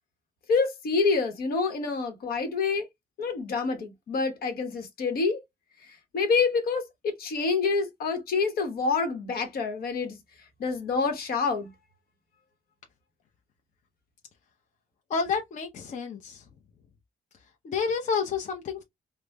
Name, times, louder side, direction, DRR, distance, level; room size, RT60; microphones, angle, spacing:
voice 1, 0.5-2.9 3.2-5.4 6.1-10.2 10.6-11.7, left 4 dB, 75° left, 1.0 m, -27 dB
voice 2, 15.1-16.4 17.6-18.8, left 5 dB, 50° left, 0.6 m, -29 dB
4.8 x 2.0 x 2.2 m
cardioid pair, 110°, 16 cm